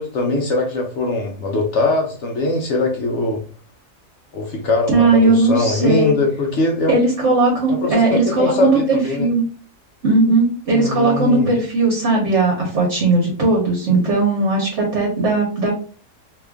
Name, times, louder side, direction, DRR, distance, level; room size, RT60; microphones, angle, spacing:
voice 1, 0.0-3.4 4.3-7.0 7.8-9.3 10.7-11.5, left 2 dB, 60° left, 0 dB, 0.8 m, -21 dB
voice 2, 4.9-6.1 6.9-9.4 10.0-15.7, right 2 dB, 50° right, -2 dB, 1.2 m, -17 dB
2.9 x 2.4 x 3.5 m, 0.40 s
omnidirectional pair, 1.6 m